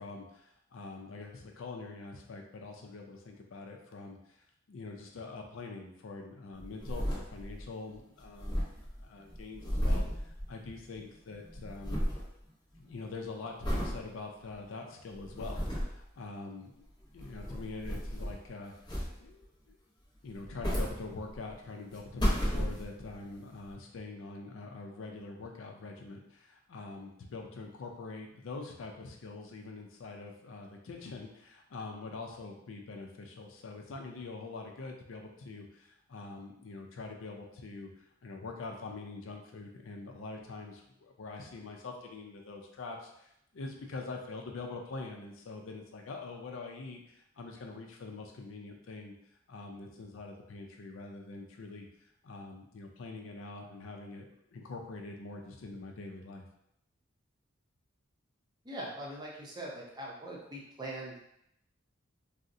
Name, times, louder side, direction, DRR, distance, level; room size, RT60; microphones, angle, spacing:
voice 1, 0.0-4.4 4.7-8.7 9.0-12.1 12.8-16.7 17.1-19.8 20.2-37.9 38.2-49.1 49.5-56.5, left 3 dB, 80° left, 2 dB, 0.4 m, -44 dB
sound 1, 6.6-7.7 8.0-11.0 11.3-12.3 12.7-13.1 13.6-14.0 14.5-14.6 15.2-16.0 17.0-18.5 18.9-19.4 20.3-21.5 21.9-23.1 23.7-23.8, equal, 20° left, 0.9 m, -33 dB
voice 2, 58.6-61.2, right 1 dB, 20° right, -3 dB, 0.6 m, -42 dB
3.6 x 2.0 x 2.6 m, 0.78 s
head